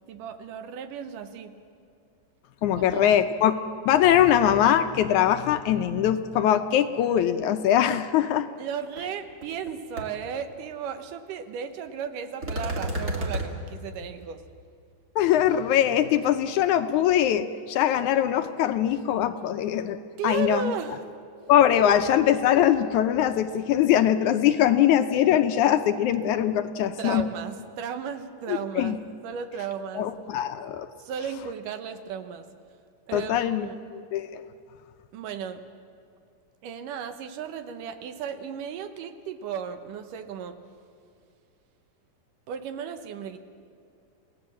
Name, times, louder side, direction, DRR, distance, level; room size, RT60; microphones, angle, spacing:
voice 1, 0.1-1.5 2.8-3.1 8.6-14.4 20.2-21.1 21.7-22.3 27.0-30.1 31.0-32.5 33.1-33.8 35.1-35.6 36.6-40.6 42.5-43.4, right 7 dB, 75° right, 9 dB, 2.6 m, -35 dB
voice 2, 2.6-3.5 3.9-8.5 15.2-20.7 21.5-27.2 28.5-29.0 30.0-30.9 33.1-33.7 33.9-34.4, left 10 dB, 75° left, 9 dB, 2.0 m, -22 dB
sound 1, 9.0-9.1 9.4-9.7 10.0-10.1 12.4-13.5, right 1 dB, 30° right, 2.0 m, -30 dB
28.5 x 17.0 x 7.4 m, 2.4 s
omnidirectional pair, 3.8 m